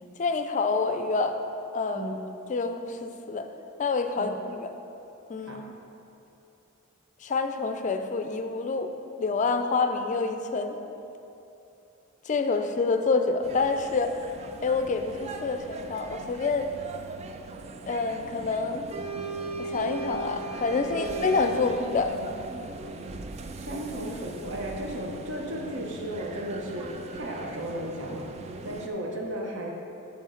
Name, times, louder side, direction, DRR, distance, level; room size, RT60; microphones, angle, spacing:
voice 1, 0.2-1.4 1.7-2.1 2.5-3.5 3.8-4.7 5.3-5.6 7.2-8.9 9.2-10.8 12.3-14.2 14.6-16.7 17.9-18.8 19.6-22.2, left 4 dB, 35° left, 7 dB, 0.4 m, -27 dB
sound 1, 13.4-28.9, right 3 dB, 30° right, 0.3 m, -39 dB
voice 2, 23.5-29.7, right 1 dB, 60° right, -1 dB, 1.0 m, -35 dB
8.2 x 5.8 x 3.8 m, 2.9 s
head